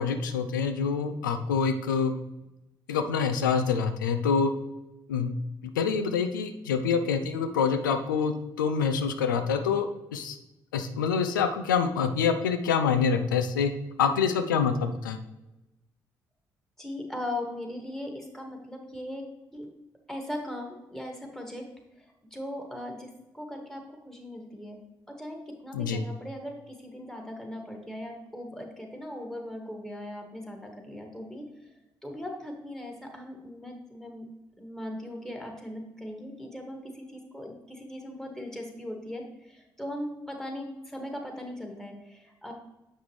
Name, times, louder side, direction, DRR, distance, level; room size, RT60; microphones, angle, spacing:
voice 1, 0.0-2.1 2.9-4.5 5.1-5.3 5.8-8.3 8.6-10.4 10.7-13.7 14.0-15.2 25.7-26.0, left 6 dB, 90° left, 9 dB, 0.4 m, -26 dB
voice 2, 16.8-19.2 19.5-19.7 20.1-21.7 22.0-22.1 22.3-24.8 25.1-31.5 32.0-34.3 34.6-42.5, left 1 dB, 5° left, 1 dB, 2.0 m, -39 dB
7.3 x 5.7 x 3.2 m, 0.96 s
hypercardioid pair, 45°, 10 cm